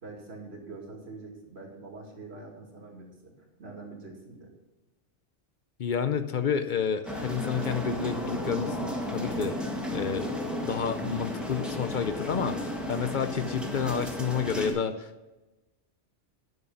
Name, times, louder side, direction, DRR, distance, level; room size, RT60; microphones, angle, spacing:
voice 1, 0.0-4.5, right 3 dB, 60° right, 0 dB, 2.3 m, -45 dB
voice 2, 5.8-10.3 10.6-15.3, left 7 dB, 55° left, 10 dB, 0.6 m, -30 dB
sound 1, 7.1-14.7, left 1 dB, ahead, 1.5 m, -33 dB
10.5 x 6.5 x 5.7 m, 1.1 s
omnidirectional pair, 1.2 m